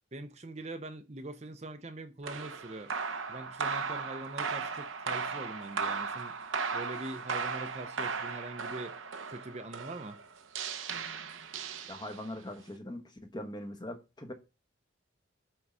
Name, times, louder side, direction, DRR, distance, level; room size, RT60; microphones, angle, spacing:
voice 1, 0.1-2.9 3.3-6.4 6.7-8.9 9.3-10.2, right 2 dB, 35° right, 0.6 m, -43 dB
sound 1, 2.2-12.4, right 5 dB, 85° right, 0.8 m, -36 dB
voice 2, 11.9-14.3, left 1 dB, 20° left, 1.0 m, -41 dB
6.1 x 4.6 x 5.4 m
head